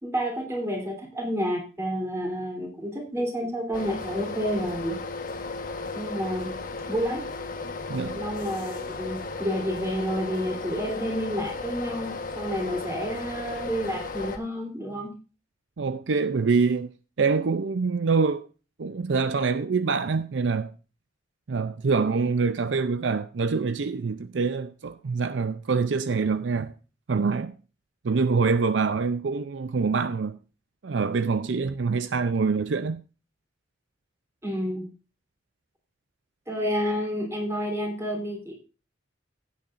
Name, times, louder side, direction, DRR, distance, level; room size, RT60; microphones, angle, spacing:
voice 1, 0.0-5.0 5.9-6.5 6.9-7.2 8.1-15.1 34.4-34.9 36.5-38.5, equal, 15° right, 3.4 m, -30 dB
sound 1, 3.7-14.4, left 3 dB, 45° left, 1.3 m, -35 dB
voice 2, 7.9-8.2 15.8-18.5 18.8-20.7 21.5-26.7 27.1-27.6 28.0-30.4 30.8-33.0, right 4 dB, 70° right, 0.5 m, -25 dB
16.0 x 8.5 x 2.5 m
head